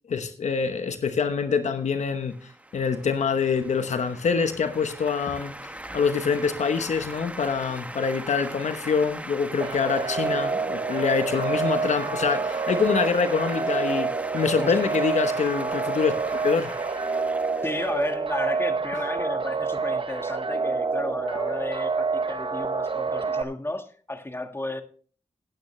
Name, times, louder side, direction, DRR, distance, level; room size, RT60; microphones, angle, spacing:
voice 1, 0.1-2.3 2.7-5.5 5.9-16.7, left 5 dB, 90° left, 1.0 m, -25 dB
sound 1, 2.0-18.7, right 1 dB, 10° right, 1.0 m, -39 dB
sound 2, 9.6-23.4, right 4 dB, 50° right, 0.9 m, -28 dB
voice 2, 14.6-14.9 17.6-24.8, left 2 dB, 20° left, 1.6 m, -33 dB
17.0 x 9.1 x 3.2 m
cardioid pair, 60°, 12 cm